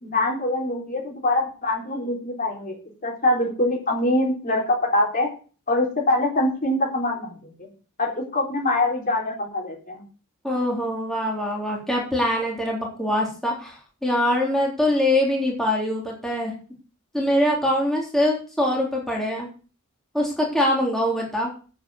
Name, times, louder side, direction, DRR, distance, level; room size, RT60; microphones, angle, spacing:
voice 1, 0.0-5.3 5.7-7.7 8.0-10.0, left 1 dB, 40° left, 0 dB, 4.0 m, -24 dB
voice 2, 10.4-16.5 17.1-19.5 20.1-21.5, left 1 dB, ahead, -3 dB, 3.4 m, -23 dB
8.9 x 7.8 x 7.8 m, 0.37 s
head